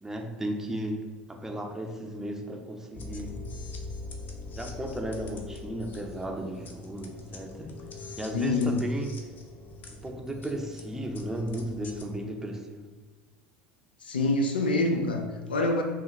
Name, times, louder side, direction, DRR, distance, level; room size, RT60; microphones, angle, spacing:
voice 1, 0.0-1.0 1.3-3.4 4.5-7.8 8.2-9.2 9.9-12.9, right 1 dB, 10° right, 3 dB, 0.6 m, -35 dB
sound 1, 2.9-12.0, left 3 dB, 40° left, 0.6 m, -42 dB
voice 2, 8.3-8.9 14.0-15.8, left 2 dB, 85° left, 4 dB, 0.4 m, -26 dB
5.5 x 2.4 x 3.0 m, 1.4 s
hypercardioid pair, 70°, 5 cm